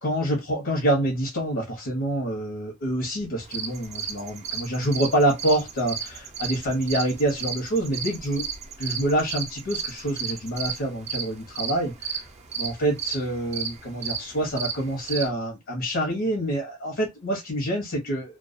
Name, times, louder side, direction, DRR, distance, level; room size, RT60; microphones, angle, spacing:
voice 1, 0.0-8.5 8.8-12.2 12.6-18.4, right 1 dB, 65° left, 0.9 m, -26 dB
sound 1, 3.4-15.3, right 6 dB, 30° right, 0.4 m, -34 dB
2.3 x 2.2 x 2.4 m
head